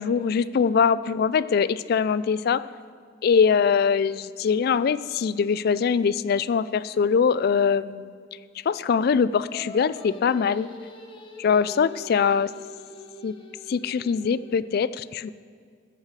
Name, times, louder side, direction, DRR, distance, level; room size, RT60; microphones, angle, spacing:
voice 1, 0.0-2.7 3.2-8.1 8.7-10.7 11.4-12.5 13.2-13.3 13.7-15.3, left 6 dB, 55° left, 17 dB, 0.3 m, -22 dB
Singing, 9.3-14.7, left 1 dB, 25° left, 1.1 m, -43 dB
14.0 x 4.9 x 7.4 m, 2.1 s
head